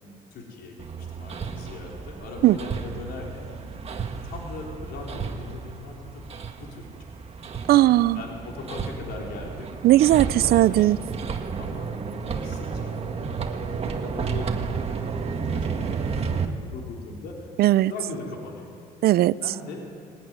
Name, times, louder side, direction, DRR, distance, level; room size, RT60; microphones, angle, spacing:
voice 1, 0.0-3.5 4.2-6.2 6.6-6.9 8.1-9.7 10.2-11.1 11.6-11.9 12.2-17.5 17.9-18.7 19.4-19.9, left 3 dB, 75° left, -1 dB, 4.1 m, -40 dB
Hammer, 0.8-16.5, right 5 dB, 35° right, 1.7 m, -32 dB
voice 2, 7.7-8.2 9.8-11.0 17.6-17.9 19.0-19.4, right 15 dB, 65° right, 19 dB, 0.5 m, -17 dB
20.5 x 18.5 x 9.6 m, 2.5 s
cardioid pair, 110°, 17 cm